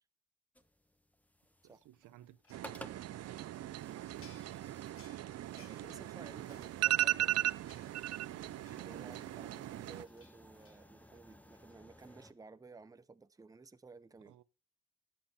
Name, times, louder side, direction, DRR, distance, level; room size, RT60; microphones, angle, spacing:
sound 1, 0.6-12.3, equal, 5° left, 1.1 m, -58 dB
voice 1, 1.6-2.4 3.2-4.6 8.2-8.6 14.3-14.4, right 14 dB, 85° right, 1.0 m, -58 dB
sound 2, 2.4-2.9 3.4-9.5 9.9-10.8, left 5 dB, 45° left, 2.8 m, -65 dB
sound 3, 2.5-10.0, right 14 dB, 55° right, 0.5 m, -37 dB
voice 2, 5.5-7.4 8.8-14.3, right 4 dB, 10° right, 0.6 m, -55 dB
12.0 x 8.6 x 4.2 m
cardioid pair, 90°, 30 cm